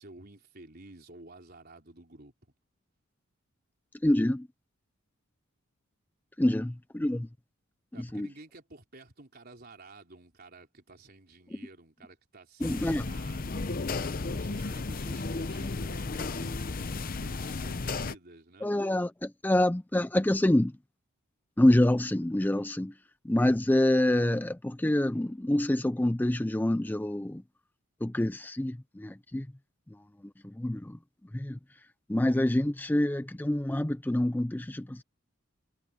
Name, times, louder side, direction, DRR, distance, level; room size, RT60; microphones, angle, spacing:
voice 1, 0.0-2.3 7.9-13.6 14.2-18.7, right 2 dB, 50° right, 4.1 m, -52 dB
voice 2, 4.0-4.5 6.4-7.3 8.0-8.3 12.6-13.1 18.6-20.7 21.6-22.9 23.2-27.4 28.0-29.5 30.4-31.0 31.3-31.6 32.1-35.0, left 1 dB, 10° left, 0.4 m, -26 dB
sound 1, 12.6-18.2, left 3 dB, 45° left, 0.7 m, -34 dB
head